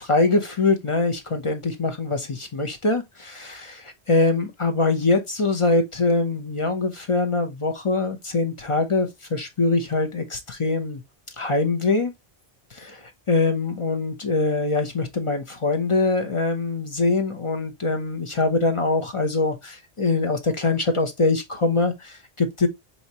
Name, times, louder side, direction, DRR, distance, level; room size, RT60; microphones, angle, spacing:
voice 1, 0.0-11.0 11.4-12.1 12.7-22.7, left 3 dB, 35° left, 0.6 m, -23 dB
4.5 x 2.8 x 2.7 m
omnidirectional pair, 1.1 m